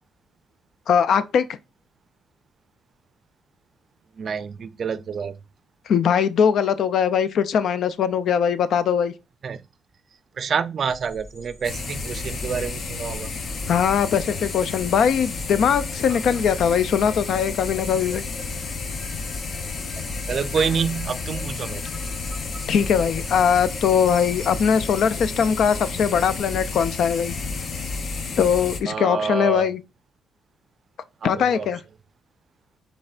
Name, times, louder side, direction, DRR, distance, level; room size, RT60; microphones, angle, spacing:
voice 1, 0.9-1.4 5.9-9.1 13.7-18.2 22.7-27.4 28.4-29.8 31.2-31.8, left 7 dB, 65° left, 0.3 m, -21 dB
voice 2, 4.2-5.3 9.4-9.6 10.4-13.3 16.1-16.2 19.9-20.0 20.3-21.8 28.9-29.7 31.2-31.7, right 6 dB, 50° right, 0.4 m, -27 dB
sound 1, 10.9-27.1, left 1 dB, 35° left, 2.6 m, -44 dB
sound 2, 11.6-28.8, left 4 dB, 50° left, 0.8 m, -31 dB
6.4 x 3.3 x 2.4 m
cardioid pair, 90°, 0 cm